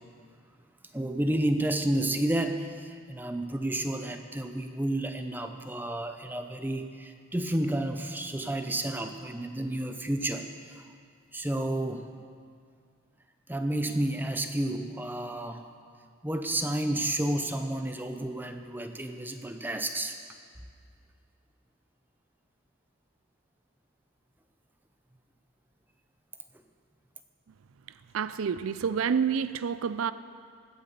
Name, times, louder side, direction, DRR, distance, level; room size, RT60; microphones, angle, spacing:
voice 1, 0.9-10.8 11.3-12.1 13.5-15.7 16.2-20.2, right 1 dB, 10° right, 6 dB, 0.7 m, -31 dB
voice 2, 28.1-30.1, right 6 dB, 85° right, 14 dB, 0.4 m, -28 dB
16.0 x 9.1 x 6.8 m, 2.1 s
head